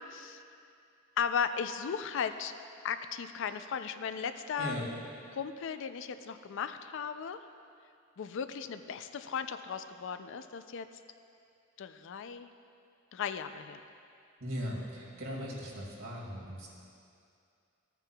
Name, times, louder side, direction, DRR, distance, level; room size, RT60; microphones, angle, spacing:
voice 1, 0.1-0.4 1.2-2.5 2.8-4.7 5.3-7.4 8.2-10.9 11.8-12.5 13.1-13.8, left 7 dB, 65° left, 10 dB, 0.4 m, -36 dB
voice 2, 14.4-16.7, equal, 75° right, -4 dB, 2.3 m, -38 dB
14.5 x 8.9 x 2.3 m, 2.4 s
head